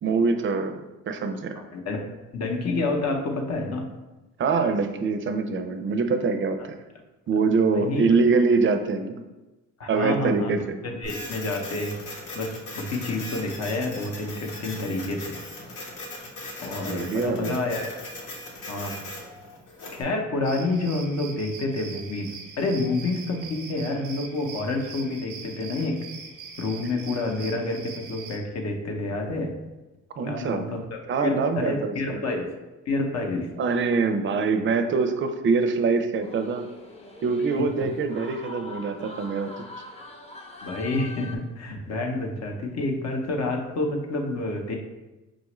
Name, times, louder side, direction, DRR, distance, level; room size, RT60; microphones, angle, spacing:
voice 1, 0.0-0.7 1.1-1.6 4.4-6.8 7.3-9.2 9.9-10.8 16.9-17.6 30.2-30.8 31.1-32.2 33.6-36.6 37.2-39.5, right 4 dB, 40° right, 7 dB, 0.4 m, -24 dB
voice 2, 1.6-2.0 2.3-3.9 7.7-8.0 9.8-10.6 10.8-11.9 12.3-15.3 16.6-18.0 18.7-18.9 19.9-22.3 22.6-26.0 26.6-29.5 30.3-32.4 32.9-33.5 40.6-44.8, left 2 dB, 60° left, 2 dB, 0.7 m, -28 dB
Printer, 11.0-20.0, left 2 dB, 85° left, 1.0 m, -39 dB
sound 1, 20.4-28.4, right 5 dB, 90° right, 0.6 m, -42 dB
sound 2, 36.2-41.4, left 2 dB, 20° left, 0.6 m, -43 dB
4.9 x 2.4 x 3.0 m, 1.1 s
cardioid pair, 90°, 30 cm